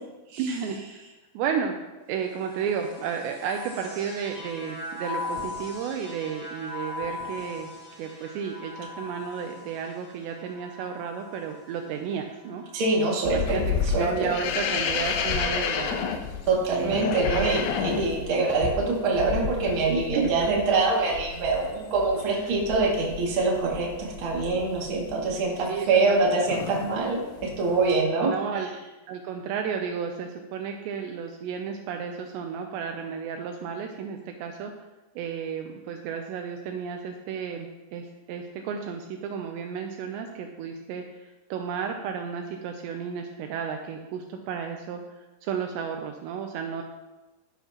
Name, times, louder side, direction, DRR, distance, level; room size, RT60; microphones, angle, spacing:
voice 1, 0.4-1.0 1.3-1.7 2.1-7.7 8.0-12.6 13.2-16.1 16.8-17.0 17.3-17.6 20.1-20.7 22.6-22.7 25.7-26.2 28.2-28.7 29.1-34.7 35.2-46.8, right 7 dB, 80° right, 4 dB, 2.7 m, -33 dB
sound 1, 2.1-13.6 14.4-15.1, left 3 dB, 10° left, 2.4 m, -40 dB
voice 2, 12.7-14.3 16.5-28.3, right 3 dB, 40° right, -3 dB, 2.2 m, -25 dB
sound 2, 13.3-26.2 26.5-27.0 27.4-28.0, left 7 dB, 75° left, 2.6 m, -31 dB
12.0 x 11.0 x 3.0 m, 1.1 s
omnidirectional pair, 5.3 m